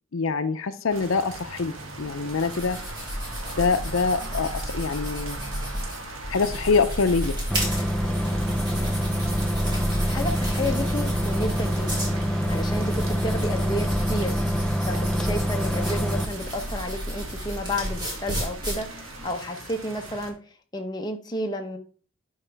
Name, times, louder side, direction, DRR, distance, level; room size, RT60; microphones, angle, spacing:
voice 1, 0.1-2.8 3.6-5.4 6.3-7.3, left 4 dB, 85° left, 10 dB, 0.6 m, -25 dB
sound 1, 0.9-20.3, right 2 dB, 80° right, 1.4 m, -40 dB
sound 2, 1.8-19.3, equal, 20° right, 3.1 m, -33 dB
sound 3, 7.5-16.3, equal, 5° left, 0.4 m, -26 dB
voice 2, 10.1-12.0 12.5-20.4 20.7-21.8, left 1 dB, 20° left, 3 dB, 0.9 m, -31 dB
11.0 x 4.8 x 3.4 m, 0.43 s
head